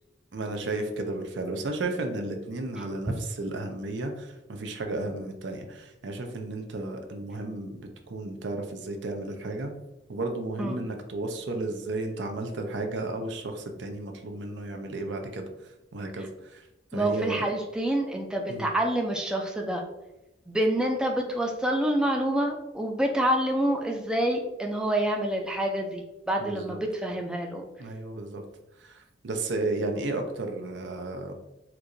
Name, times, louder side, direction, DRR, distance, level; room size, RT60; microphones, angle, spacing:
voice 1, 0.3-9.7 10.1-16.7 16.9-17.5 18.5-18.7 26.4-26.8 27.8-28.4 28.8-31.3, right 2 dB, 70° right, 4 dB, 0.6 m, -33 dB
voice 2, 16.9-19.8 20.5-27.6, right 1 dB, 5° right, 1 dB, 0.3 m, -27 dB
4.4 x 2.5 x 2.5 m, 0.94 s
head